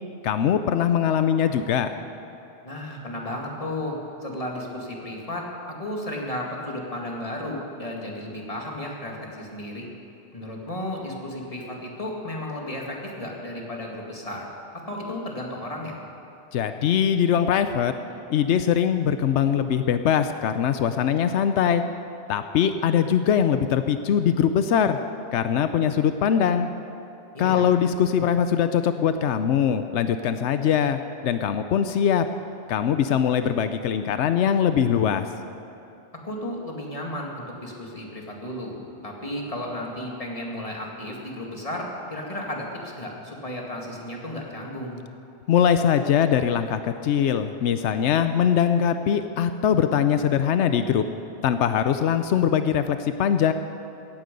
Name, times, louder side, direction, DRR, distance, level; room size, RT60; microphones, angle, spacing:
voice 1, 0.2-1.9 16.5-17.9 18.3-21.8 22.3-25.0 25.3-26.7 27.4-32.3 32.7-35.3 45.5-51.0 51.4-53.5, left 8 dB, 90° left, 9 dB, 0.9 m, -22 dB
voice 2, 2.6-5.5 5.8-9.9 10.3-14.5 14.9-16.0 27.3-27.7 36.2-45.0, left 1 dB, 30° left, -1 dB, 2.3 m, -33 dB
17.0 x 15.0 x 5.3 m, 2.8 s
omnidirectional pair, 1.2 m